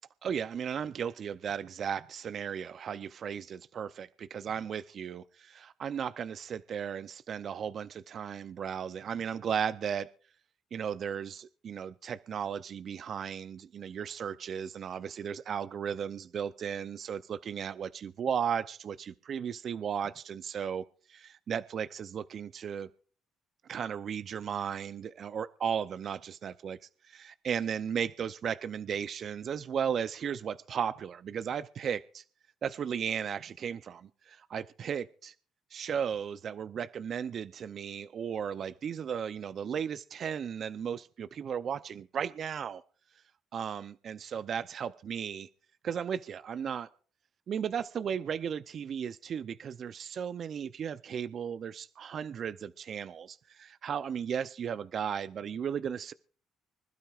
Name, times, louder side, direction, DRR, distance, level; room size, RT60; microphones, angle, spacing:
voice 1, 0.2-10.1 10.7-22.9 23.6-26.8 27.0-32.2 32.6-35.3 35.7-42.8 43.5-45.5 45.8-46.9 47.5-56.1, right 7 dB, 55° right, 13 dB, 0.6 m, -35 dB
25.0 x 12.5 x 2.4 m, 0.43 s
cardioid pair, 85°, 0 cm